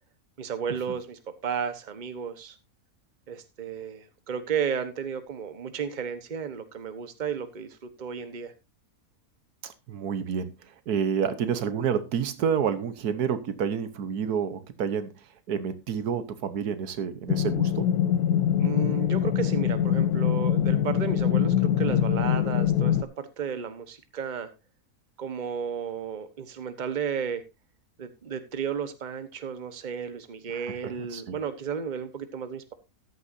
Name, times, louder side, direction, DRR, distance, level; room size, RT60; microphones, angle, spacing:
voice 1, 0.4-2.5 3.3-8.5 18.6-24.5 25.2-27.4 28.0-32.7, right 7 dB, 35° right, 1.2 m, -33 dB
voice 2, 9.6-10.5 10.9-15.1 15.5-17.9 30.5-31.3, right 7 dB, 80° right, 1.5 m, -29 dB
sound 1, 17.3-23.0, left 10 dB, 80° left, 1.3 m, -24 dB
13.5 x 11.0 x 2.7 m
omnidirectional pair, 1.6 m